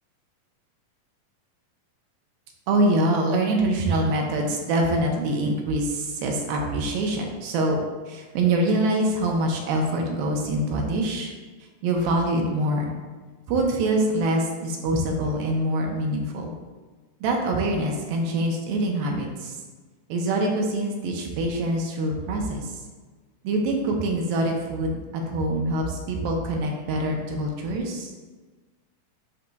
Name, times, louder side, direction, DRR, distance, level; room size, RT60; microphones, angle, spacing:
voice 1, 2.7-7.8 8.1-11.3 11.8-12.9 13.5-16.5 17.2-19.6 20.1-22.8 23.4-28.1, right 1 dB, 85° right, 1 dB, 2.6 m, -25 dB
10.5 x 4.0 x 2.3 m, 1.3 s
omnidirectional pair, 4.1 m